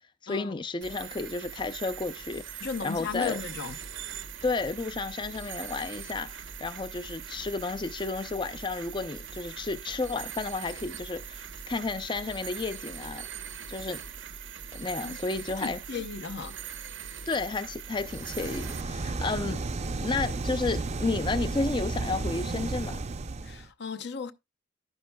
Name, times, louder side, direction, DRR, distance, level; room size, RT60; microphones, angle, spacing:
voice 1, 0.2-3.4 4.4-13.2 13.7-14.0 14.7-16.0 17.3-19.6 20.0-23.0, left 3 dB, 25° left, 0.4 m, -32 dB
sound 1, 0.8-18.8, right 7 dB, 85° right, 1.0 m, -41 dB
voice 2, 2.6-3.8 15.0-15.2 15.6-16.6 23.4-24.3, left 5 dB, 60° left, 0.7 m, -35 dB
sound 2, 17.9-23.7, right 3 dB, 35° right, 0.5 m, -33 dB
11.0 x 9.8 x 2.2 m
head